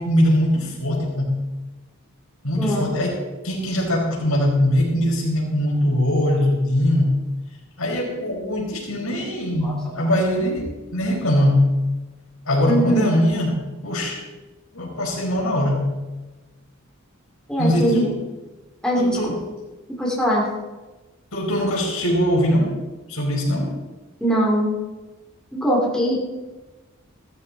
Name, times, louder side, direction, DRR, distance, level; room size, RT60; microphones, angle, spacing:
voice 1, 0.0-1.4 2.4-7.2 7.8-11.7 12.5-14.2 14.7-15.9 17.6-18.2 19.0-19.4 21.3-22.8 23.1-23.8, left 1 dB, 75° left, -1 dB, 4.9 m, -21 dB
voice 2, 12.7-13.1 17.5-18.1 18.8-19.3 20.0-20.5 24.2-24.7 25.5-26.3, right 1 dB, 5° left, -4 dB, 3.0 m, -21 dB
16.0 x 13.5 x 4.2 m, 1.2 s
head